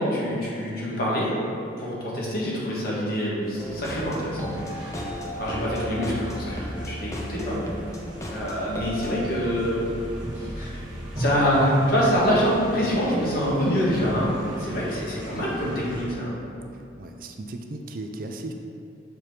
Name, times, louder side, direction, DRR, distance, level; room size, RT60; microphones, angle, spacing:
voice 1, 0.0-1.3 1.8-4.6 5.4-7.6 8.2-9.8 10.3-10.8 11.2-16.4, equal, 50° left, -6 dB, 1.7 m, -25 dB
sound 1, 3.4-16.1, equal, 20° right, 1.4 m, -37 dB
sound 2, 3.6-9.2, equal, 15° left, 0.7 m, -35 dB
voice 2, 16.7-18.5, right 2 dB, 50° right, 4 dB, 0.5 m, -37 dB
6.7 x 4.4 x 4.9 m, 2.6 s
head